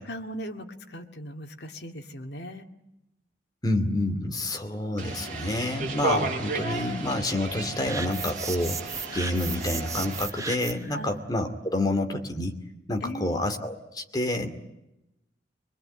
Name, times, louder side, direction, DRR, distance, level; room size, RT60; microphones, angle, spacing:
voice 1, 0.1-2.7 10.8-11.2 13.0-13.5, equal, 65° left, 4 dB, 2.2 m, -38 dB
voice 2, 3.6-12.5 12.9-14.5, left 1 dB, 20° left, 5 dB, 2.5 m, -28 dB
sound 1, 5.0-10.3, right 3 dB, 45° right, 4.5 m, -34 dB
sound 2, 7.9-10.9, right 5 dB, 20° right, 0.9 m, -36 dB
24.0 x 22.0 x 9.0 m, 0.91 s
head